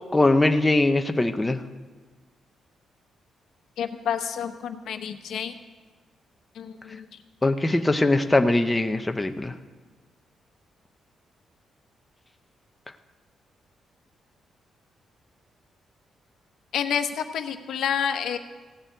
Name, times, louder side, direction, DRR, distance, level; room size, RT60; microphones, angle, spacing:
voice 1, 0.1-1.6 7.4-9.5, left 2 dB, 10° left, 6 dB, 0.5 m, -21 dB
voice 2, 3.8-5.5 6.6-7.0 16.7-18.4, left 8 dB, 70° left, 8 dB, 0.9 m, -29 dB
16.0 x 6.8 x 9.0 m, 1.4 s
cardioid pair, 165°, 0 cm